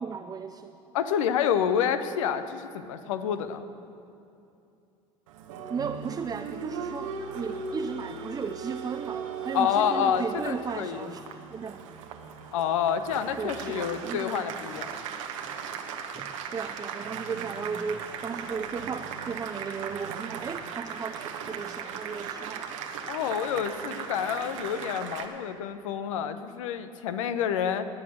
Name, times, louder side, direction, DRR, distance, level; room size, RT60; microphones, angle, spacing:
voice 1, 0.0-0.8 5.7-11.2 11.5-11.9 13.4-14.5 16.1-22.7, right 5 dB, 20° right, 7 dB, 0.6 m, -35 dB
voice 2, 0.9-3.7 9.5-11.1 12.5-14.9 23.1-27.9, left 8 dB, 75° left, 10 dB, 0.9 m, -28 dB
Applause, 5.3-25.3, right 6 dB, 75° right, 1.2 m, -38 dB
20.0 x 7.3 x 6.5 m, 2.7 s
hypercardioid pair, 70°, 17 cm